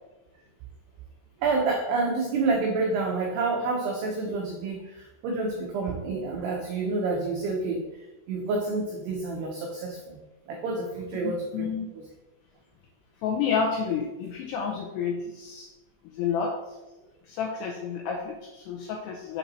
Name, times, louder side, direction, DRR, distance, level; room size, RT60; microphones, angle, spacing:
voice 1, 1.4-7.8 8.3-10.2 10.5-11.7 11.9-12.0, right 3 dB, 85° right, 0 dB, 2.3 m, -28 dB
voice 2, 11.2-11.9 13.2-15.7 16.1-16.5 17.3-19.4, left 6 dB, 80° left, -1 dB, 2.4 m, -30 dB
7.2 x 5.4 x 4.1 m, 1.0 s
omnidirectional pair, 5.8 m